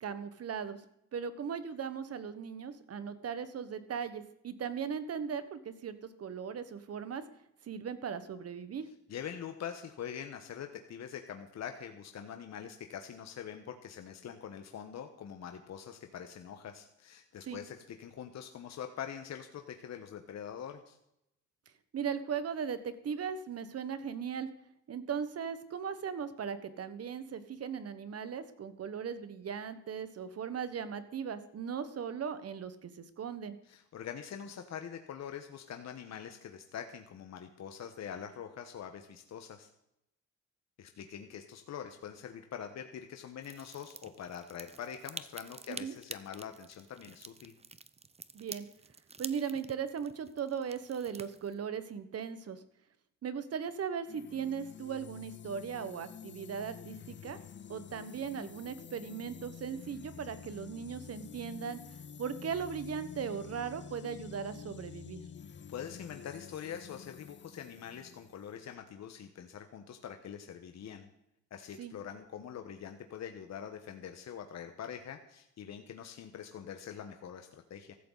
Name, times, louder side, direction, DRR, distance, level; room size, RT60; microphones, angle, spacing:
voice 1, 0.0-0.8 1.1-7.2 7.7-8.9 17.5-17.6 21.9-24.5 24.9-33.6 45.7-45.9 48.3-48.6 49.2-52.6 53.2-57.4 57.7-61.8 62.2-65.2 71.8-71.9, right 7 dB, 55° right, 12 dB, 1.5 m, -38 dB
voice 2, 9.1-21.0 33.6-39.7 40.8-47.5 65.7-71.1 71.5-77.9, left 8 dB, 60° left, 6 dB, 1.4 m, -44 dB
sound 1, 43.4-51.6, right 4 dB, 20° right, 0.8 m, -48 dB
sound 2, 54.1-68.8, left 7 dB, 40° left, 0.7 m, -49 dB
15.5 x 13.5 x 4.1 m, 0.80 s
cardioid pair, 90°, 30 cm